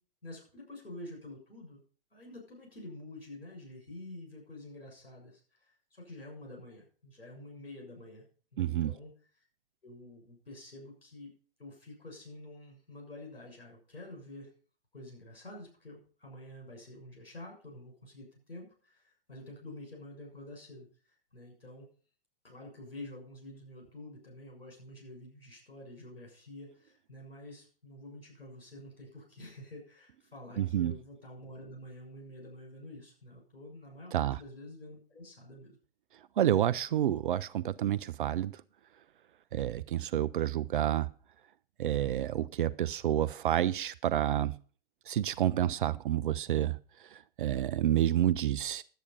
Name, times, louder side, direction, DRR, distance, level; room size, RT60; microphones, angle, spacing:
voice 1, 0.2-1.8 2.1-8.2 8.5-9.1 9.8-11.3 11.6-14.5 14.9-20.9 21.3-21.9 22.4-35.8, left 1 dB, 80° left, 0 dB, 6.9 m, -48 dB
voice 2, 8.6-8.9 30.6-30.9 34.1-34.4 36.4-38.6 39.5-41.1 41.8-44.6 45.1-48.8, right 11 dB, 60° right, 17 dB, 0.5 m, -29 dB
11.5 x 8.5 x 5.5 m, 0.42 s
figure-of-eight pair, 100°, 29 cm